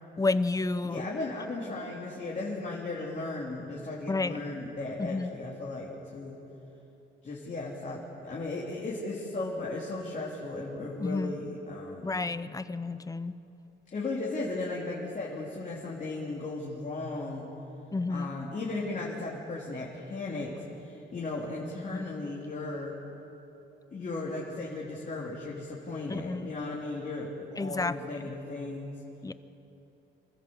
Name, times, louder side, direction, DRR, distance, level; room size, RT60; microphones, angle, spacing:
voice 1, 0.2-1.0 4.1-4.3 5.0-5.3 11.0-11.4 12.0-13.3 17.9-18.3 21.9-22.1 26.1-26.5 27.6-28.0 29.2-29.3, left 3 dB, 15° left, 14 dB, 0.8 m, -30 dB
voice 2, 0.8-6.4 7.2-12.1 13.9-17.6 18.1-22.9 23.9-28.9, left 2 dB, 40° left, -5 dB, 3.6 m, -36 dB
26.5 x 14.0 x 8.0 m, 3.0 s
cardioid pair, 90°, 20 cm